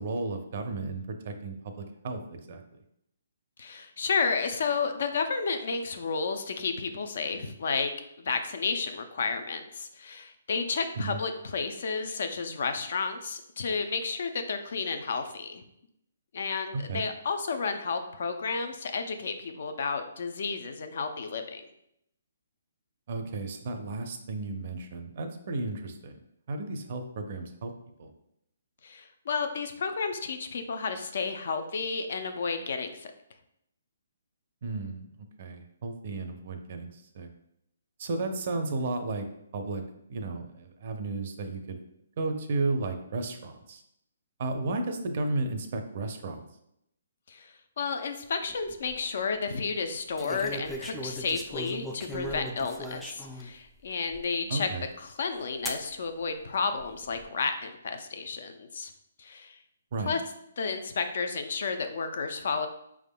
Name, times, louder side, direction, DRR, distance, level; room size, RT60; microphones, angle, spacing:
voice 1, 0.0-2.6 11.0-11.2 16.9-17.0 23.1-26.2 26.5-27.7 28.0-28.1 34.6-35.1 35.4-37.3 38.0-39.3 39.5-39.8 40.1-41.8 42.2-43.8 44.4-46.4 54.5-54.8 59.9-60.1, right 3 dB, 50° right, 6 dB, 0.6 m, -33 dB
voice 2, 3.6-7.9 8.2-15.6 16.3-21.6 28.8-33.1 47.3-54.7 55.0-58.9 59.2-59.6 60.1-60.2 60.6-62.7, left 5 dB, 60° left, 7 dB, 0.5 m, -32 dB
sound 1, 48.5-48.9 50.2-53.5 54.1-54.2 55.7-55.9 56.8-57.2, equal, 5° left, 0.3 m, -38 dB
4.8 x 3.5 x 2.2 m, 0.77 s
hypercardioid pair, 155°, 0 cm